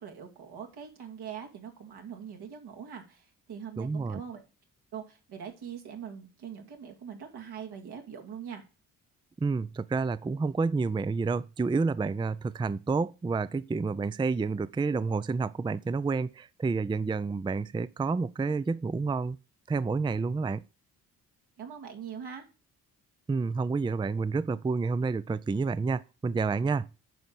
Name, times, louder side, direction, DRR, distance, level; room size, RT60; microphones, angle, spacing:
voice 1, 0.0-4.4 4.9-8.6 21.6-22.5, right 8 dB, 75° right, 2.4 m, -42 dB
voice 2, 3.8-4.2 9.4-19.4 19.7-20.6 23.3-26.9, right 4 dB, 15° right, 0.4 m, -29 dB
9.3 x 5.3 x 6.2 m
supercardioid pair, 60°, 39 cm